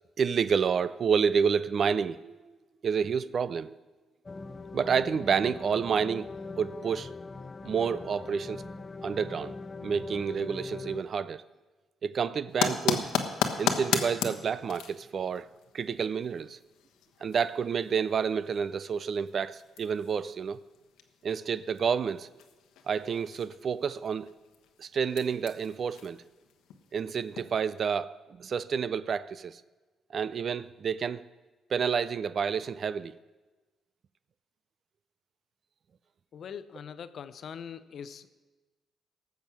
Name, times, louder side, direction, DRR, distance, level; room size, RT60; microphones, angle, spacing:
voice 1, 0.2-2.4 2.8-3.8 4.7-6.3 6.6-7.1 7.6-8.6 9.0-9.5 9.8-11.4 12.0-13.1 13.6-15.5 15.7-16.6 17.2-20.6 21.2-22.3 22.9-24.3 24.8-26.2 26.9-29.6 30.1-31.2 31.7-33.1, right 6 dB, 50° right, 0.4 m, -29 dB
sound 1, 4.2-11.0, left 3 dB, 25° left, 0.5 m, -42 dB
sound 2, 12.5-27.6, left 8 dB, 90° left, 1.2 m, -37 dB
voice 2, 36.3-38.3, left 7 dB, 60° left, 0.7 m, -42 dB
18.5 x 7.2 x 6.2 m
cardioid pair, 90°, 0 cm